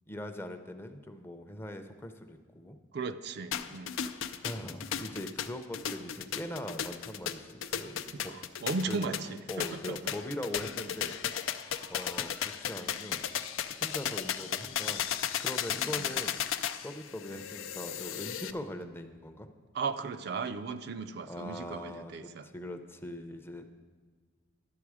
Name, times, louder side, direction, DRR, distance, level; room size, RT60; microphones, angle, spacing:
voice 1, 0.1-2.8 4.4-8.3 8.9-9.1 9.5-11.1 11.9-12.3 12.6-13.2 13.8-15.0 15.4-16.4 16.8-19.5 21.3-23.7, left 1 dB, 10° left, 7 dB, 0.5 m, -41 dB
voice 2, 2.9-3.9 8.1-10.0 15.9-16.1 19.7-22.5, right 4 dB, 55° right, 10 dB, 0.4 m, -36 dB
sound 1, 3.5-18.5, left 9 dB, 90° left, 0.5 m, -35 dB
11.5 x 7.7 x 4.8 m, 1.5 s
head